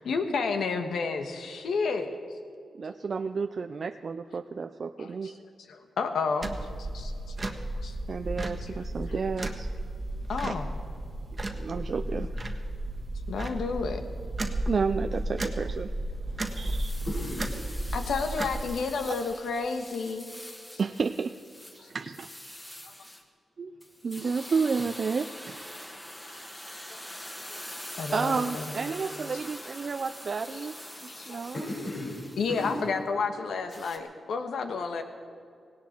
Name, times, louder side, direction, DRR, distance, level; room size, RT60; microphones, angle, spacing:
voice 1, 0.1-2.1 5.0-5.3 5.7-6.5 6.8-7.1 7.7-7.9 8.6-8.8 10.3-10.7 13.3-14.0 17.9-20.3 21.8-21.9 26.9-27.0 27.5-27.6 27.9-28.9 29.3-29.4 30.5-30.7 31.1-31.4 32.4-35.0, left 4 dB, 85° left, 6 dB, 1.5 m, -31 dB
voice 2, 2.8-5.4 8.1-9.7 10.4-10.6 11.5-12.6 14.7-15.9 16.6-17.0 20.8-21.3 21.8-22.3 23.6-23.7 24.0-25.8 28.1-30.8 31.0-31.6, right 5 dB, 50° right, 8 dB, 0.5 m, -31 dB
sound 1, 6.4-18.6, right 1 dB, 25° right, 1.5 m, -33 dB
voice 3, 16.3-18.0 27.2-27.4 28.7-29.0 31.5-32.2 32.5-32.8, left 1 dB, 65° left, -6 dB, 5.3 m, -38 dB
sound 2, 16.4-23.2 23.8-32.9 33.7-34.0, equal, 15° left, 2.1 m, -44 dB
18.0 x 17.5 x 4.5 m, 2.4 s
cardioid pair, 100°, 0 cm